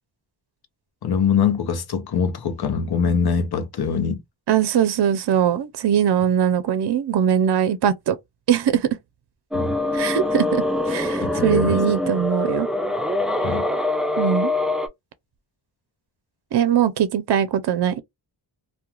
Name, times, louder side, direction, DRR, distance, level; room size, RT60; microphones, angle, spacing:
voice 1, 1.0-4.2 9.5-9.8 11.2-11.8 13.4-13.7, left 6 dB, 60° left, 0.6 m, -23 dB
voice 2, 4.5-8.2 8.5-8.9 9.9-12.7 14.2-14.5 16.5-18.0, right 9 dB, 65° right, 0.5 m, -21 dB
sound 1, 9.5-14.9, left 2 dB, ahead, 0.4 m, -24 dB
2.3 x 2.2 x 2.9 m
wide cardioid pair, 70°, 44 cm